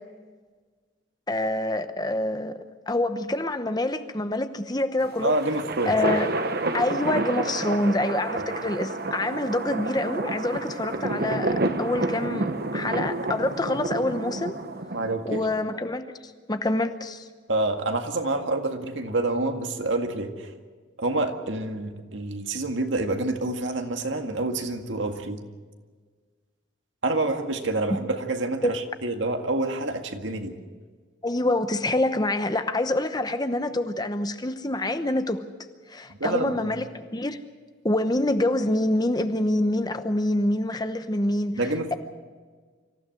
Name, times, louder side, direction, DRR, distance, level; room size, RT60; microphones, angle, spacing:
voice 1, 1.3-2.6 2.9-5.3 5.9-14.5 15.2-17.3 27.9-28.0 28.6-28.8 31.2-35.4 35.9-37.4 37.8-41.6, left 1 dB, 20° left, 9 dB, 0.9 m, -26 dB
sound 1, 5.0-15.5, right 2 dB, 50° right, 1.2 m, -29 dB
voice 2, 5.2-6.0 14.9-15.4 17.5-20.5 21.0-25.4 27.0-30.6 36.2-36.7 41.6-42.0, right 2 dB, 75° right, 5 dB, 1.9 m, -27 dB
25.5 x 15.0 x 7.8 m, 1.5 s
head